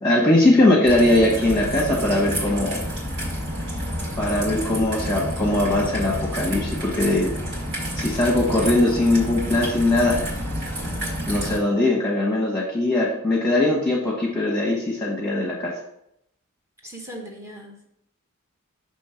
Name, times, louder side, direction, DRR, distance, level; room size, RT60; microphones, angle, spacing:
voice 1, 0.0-2.8 4.2-7.3 8.0-10.2 11.3-15.7, left 1 dB, 10° left, -4 dB, 1.2 m, -20 dB
Raindrop / Trickle dribble, 0.8-11.6, equal, 60° right, 2.0 m, -29 dB
voice 2, 16.8-17.9, equal, 15° right, 0 dB, 0.9 m, -39 dB
6.5 x 3.1 x 5.7 m, 0.75 s
head